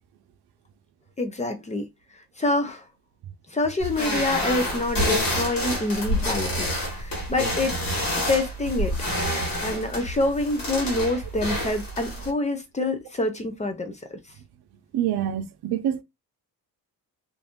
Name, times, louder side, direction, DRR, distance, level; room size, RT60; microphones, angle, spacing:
voice 1, 1.2-1.9 2.4-2.8 3.5-7.7 8.3-8.9 9.6-14.2, left 2 dB, 20° left, 0.4 m, -26 dB
sound 1, 3.8-12.3, equal, 65° left, 1.5 m, -28 dB
voice 2, 14.9-16.0, right 10 dB, 90° right, 0.7 m, -26 dB
2.6 x 2.5 x 3.5 m
wide cardioid pair, 160°, 37 cm